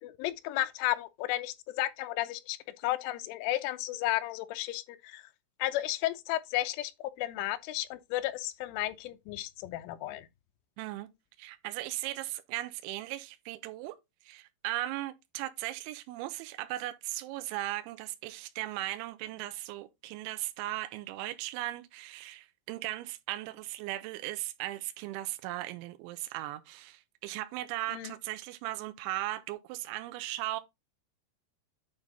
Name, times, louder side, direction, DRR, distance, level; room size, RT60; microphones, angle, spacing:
voice 1, 0.0-2.6 2.8-5.2 5.6-6.9 7.2-10.3 27.9-28.1, left 15 dB, 85° left, 3.1 m, -33 dB
voice 2, 10.8-11.1 11.4-14.0 14.2-30.6, right 16 dB, 80° right, 3.0 m, -37 dB
9.0 x 3.6 x 4.0 m
omnidirectional pair, 5.6 m